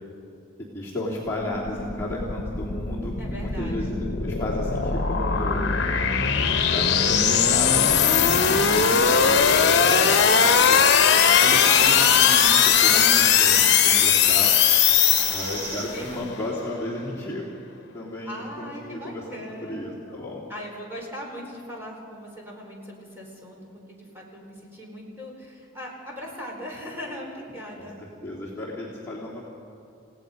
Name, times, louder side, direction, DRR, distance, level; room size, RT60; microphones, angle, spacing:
voice 1, 0.7-5.7 6.0-9.3 9.6-10.8 11.4-14.5 15.3-17.4 17.9-20.4 27.8-29.4, left 1 dB, 15° left, -7 dB, 2.8 m, -34 dB
sound 1, 1.3-15.9, left 7 dB, 55° left, 1.2 m, -20 dB
voice 2, 3.2-3.9 8.1-9.6 11.2-12.0 15.0-16.3 18.3-20.2 20.5-23.6 23.9-28.0, equal, 10° right, -2 dB, 4.5 m, -39 dB
sound 2, 10.7-16.2, right 2 dB, 70° right, 4.4 m, -34 dB
30.0 x 17.5 x 5.3 m, 2.8 s
head